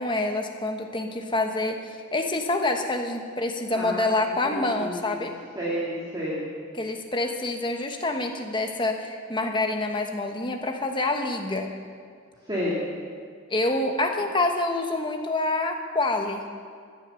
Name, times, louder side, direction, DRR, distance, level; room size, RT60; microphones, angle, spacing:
voice 1, 0.0-5.3 6.8-11.7 13.5-16.4, left 2 dB, 25° left, 3 dB, 1.2 m, -27 dB
voice 2, 3.7-5.3 5.6-6.5 12.5-12.8, equal, 20° right, -8 dB, 2.4 m, -31 dB
15.0 x 11.0 x 7.1 m, 2.1 s
head